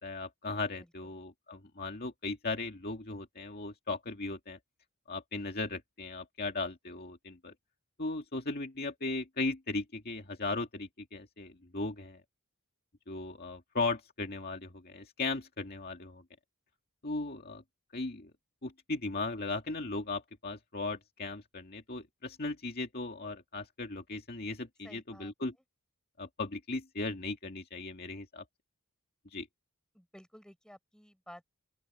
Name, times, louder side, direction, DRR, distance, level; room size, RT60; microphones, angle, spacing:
voice 1, 0.0-4.6 5.1-7.5 8.0-12.2 13.1-16.2 17.0-17.6 17.9-18.3 18.6-25.5 26.2-28.4 29.3-29.5, left 3 dB, 45° left, 2.2 m, -37 dB
voice 2, 0.8-1.2 24.8-25.3 29.9-31.5, equal, 5° left, 7.4 m, -54 dB
open air
head